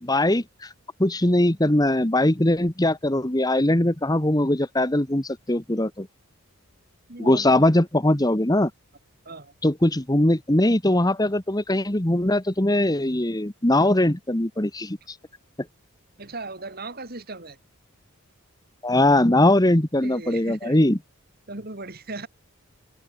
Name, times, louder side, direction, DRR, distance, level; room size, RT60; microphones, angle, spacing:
voice 1, 0.0-0.7 1.0-6.1 7.2-8.7 9.6-15.2 18.8-21.0, left 1 dB, 15° left, 1.2 m, -21 dB
voice 2, 7.1-7.7 9.2-9.5 16.2-17.6 20.0-20.8 21.5-22.3, right 2 dB, 45° right, 2.9 m, -37 dB
open air
head